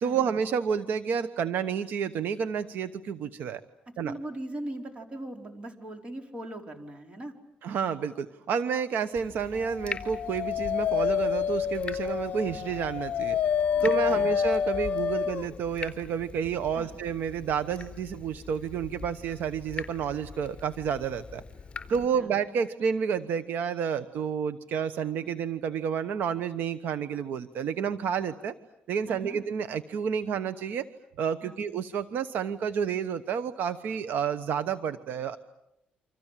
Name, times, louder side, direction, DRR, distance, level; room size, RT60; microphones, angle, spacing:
voice 1, 0.0-3.6 4.0-4.1 7.6-13.4 13.8-21.4 21.9-28.5 28.9-30.9 31.2-35.4, right 7 dB, 75° right, 11 dB, 1.1 m, -30 dB
voice 2, 4.0-7.3 13.7-14.2 16.7-17.0 21.9-22.3 29.1-29.4 31.4-31.6, right 1 dB, 35° right, 4 dB, 4.6 m, -40 dB
Water tap faucet / Drip, 9.1-22.1, left 5 dB, 30° left, 4.2 m, -43 dB
Dog, 9.9-15.5, left 7 dB, 55° left, 1.0 m, -28 dB
29.0 x 26.0 x 7.5 m, 0.82 s
cardioid pair, 110°, 3 cm